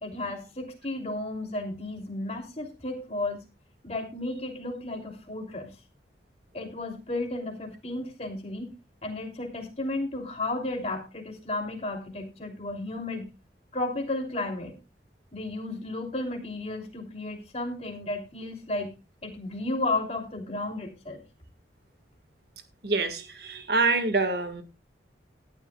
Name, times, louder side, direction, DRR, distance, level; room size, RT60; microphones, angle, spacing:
voice 1, 0.0-3.4 3.8-5.7 6.5-8.7 9.0-13.3 13.7-14.8 15.3-18.9 19.2-21.2, left 2 dB, 35° left, 2 dB, 3.1 m, -33 dB
voice 2, 22.8-24.6, right 3 dB, 60° right, 8 dB, 1.8 m, -26 dB
18.5 x 11.5 x 2.4 m, 0.26 s
head